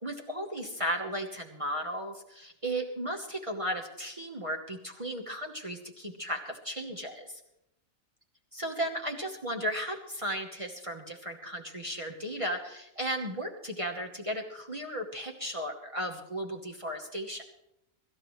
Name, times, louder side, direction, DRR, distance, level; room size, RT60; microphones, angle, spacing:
voice 1, 0.0-7.4 8.5-17.4, equal, 25° right, 0 dB, 1.1 m, -35 dB
24.0 x 13.0 x 3.2 m, 0.81 s
omnidirectional pair, 1.4 m